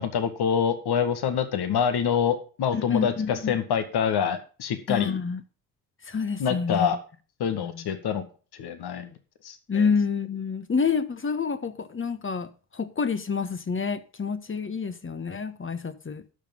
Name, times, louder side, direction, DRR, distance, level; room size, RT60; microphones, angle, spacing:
voice 1, 0.0-5.2 6.4-7.0 7.4-8.2 8.6-9.1 9.4-9.9, left 7 dB, 55° left, 1.9 m, -26 dB
voice 2, 2.7-3.5 4.9-5.4 6.1-6.9 7.5-7.8 9.7-16.2, left 5 dB, 25° left, 1.3 m, -28 dB
12.5 x 6.1 x 5.5 m
hypercardioid pair, 50°, 45 cm